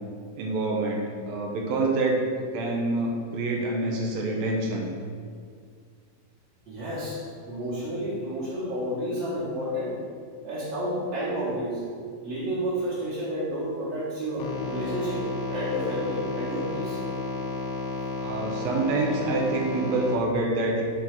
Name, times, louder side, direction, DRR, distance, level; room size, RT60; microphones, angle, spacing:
voice 1, 0.4-2.2 2.5-4.9 18.2-20.8, right 2 dB, 85° right, 0 dB, 1.5 m, -26 dB
voice 2, 6.7-7.2 7.5-10.0 10.4-11.8 12.2-17.0, equal, 60° right, -9 dB, 1.9 m, -30 dB
sound 1, 14.4-20.2, left 3 dB, 85° left, 2.4 m, -32 dB
6.2 x 3.9 x 5.8 m, 2.1 s
omnidirectional pair, 4.1 m